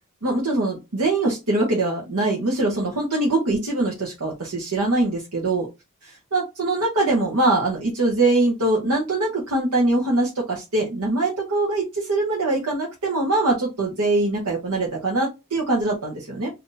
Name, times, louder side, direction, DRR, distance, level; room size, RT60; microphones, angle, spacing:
voice 1, 0.2-5.7 6.3-16.5, right 2 dB, 80° right, -3 dB, 1.0 m, -22 dB
2.8 x 2.6 x 3.8 m, 0.24 s
head